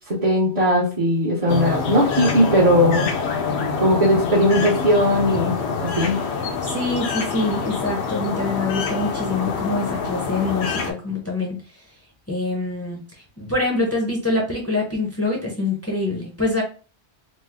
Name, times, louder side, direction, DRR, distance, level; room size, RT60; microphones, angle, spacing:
voice 1, 0.1-3.1 3.8-5.5 6.0-6.2, equal, 35° right, -6 dB, 0.7 m, -18 dB
sound 1, 1.5-10.9, left 5 dB, 75° left, 0.9 m, -26 dB
voice 2, 6.6-11.6 12.3-13.0 13.4-16.6, left 2 dB, 15° left, -1 dB, 0.5 m, -25 dB
3.1 x 2.0 x 3.4 m, 0.36 s
omnidirectional pair, 1.1 m